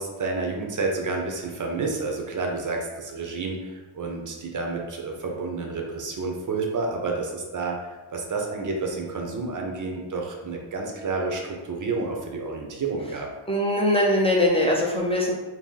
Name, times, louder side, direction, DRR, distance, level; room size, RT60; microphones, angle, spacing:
voice 1, 0.0-13.3, right 3 dB, 40° right, 1 dB, 0.6 m, -30 dB
voice 2, 13.5-15.3, left 1 dB, 10° left, -3 dB, 0.5 m, -21 dB
2.7 x 2.6 x 3.8 m, 1.2 s
wide cardioid pair, 120°, 48 cm